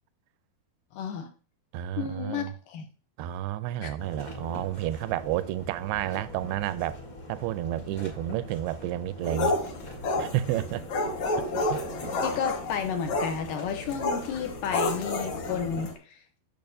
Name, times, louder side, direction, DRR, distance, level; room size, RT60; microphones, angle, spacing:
voice 1, 0.9-1.3 2.0-2.9 3.8-3.9 12.2-16.2, left 7 dB, 75° left, 2.1 m, -32 dB
voice 2, 1.7-2.5 3.2-7.0 7.3-9.6 10.2-10.8 11.7-11.8, right 13 dB, 85° right, 2.5 m, -30 dB
sound 1, 4.0-15.9, left 1 dB, 40° left, 1.3 m, -43 dB
sound 2, 9.2-15.9, left 2 dB, 55° left, 2.4 m, -30 dB
8.7 x 6.5 x 2.6 m
omnidirectional pair, 4.4 m